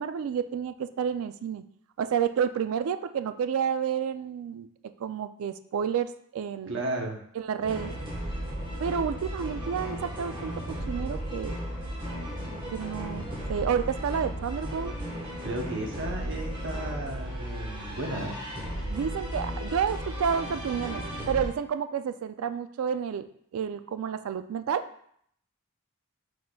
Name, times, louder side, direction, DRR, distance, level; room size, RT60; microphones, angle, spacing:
voice 1, 0.0-1.6 2.0-4.7 5.0-6.8 7.4-7.9 8.8-11.6 12.7-14.9 18.9-23.3 23.5-24.9, right 7 dB, 70° right, 11 dB, 0.3 m, -30 dB
voice 2, 6.7-7.2 15.4-18.4, right 2 dB, 55° right, 1 dB, 0.8 m, -34 dB
sound 1, 7.6-21.5, equal, 20° right, 1.0 m, -35 dB
4.6 x 4.1 x 2.2 m, 0.66 s
head